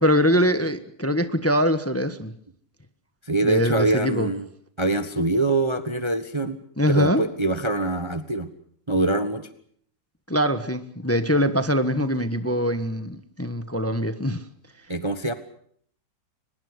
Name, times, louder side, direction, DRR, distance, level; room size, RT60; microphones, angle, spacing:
voice 1, 0.0-2.3 3.4-4.3 6.8-7.2 10.3-14.4, equal, 10° left, 10 dB, 1.2 m, -23 dB
voice 2, 3.2-4.4 4.8-6.6 6.9-8.5 8.9-9.5 14.9-15.3, right 2 dB, 20° right, 10 dB, 1.2 m, -24 dB
24.0 x 21.0 x 8.1 m, 0.63 s
omnidirectional pair, 1.8 m